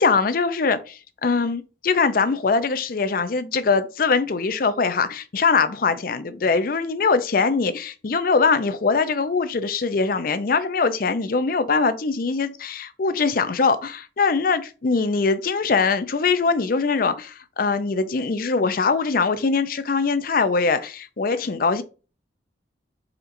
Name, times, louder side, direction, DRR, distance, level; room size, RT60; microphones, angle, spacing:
voice 1, 0.0-21.8, left 4 dB, 50° left, 0.5 m, -22 dB
4.3 x 3.8 x 2.5 m
head